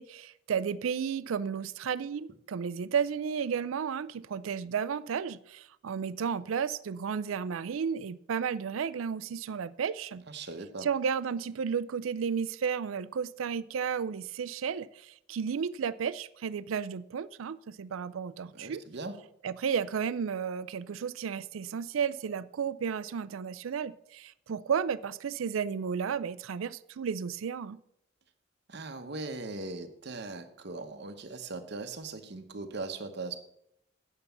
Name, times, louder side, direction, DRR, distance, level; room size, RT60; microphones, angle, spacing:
voice 1, 0.0-10.2 10.8-18.8 19.4-27.8, right 7 dB, 90° right, 0.4 m, -33 dB
voice 2, 10.3-10.9 18.4-19.2 28.7-33.4, right 3 dB, 55° right, 1.0 m, -39 dB
9.2 x 6.7 x 6.9 m
head